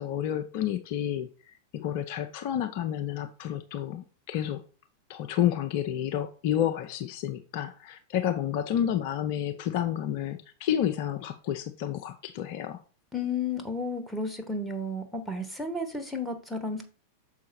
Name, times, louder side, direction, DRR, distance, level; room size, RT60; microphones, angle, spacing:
voice 1, 0.0-4.6 5.1-12.8, left 10 dB, 45° left, 7 dB, 0.5 m, -30 dB
voice 2, 13.1-16.8, left 2 dB, 5° left, 5 dB, 1.3 m, -32 dB
6.4 x 4.7 x 4.3 m, 0.38 s
figure-of-eight pair, 90°, 0 cm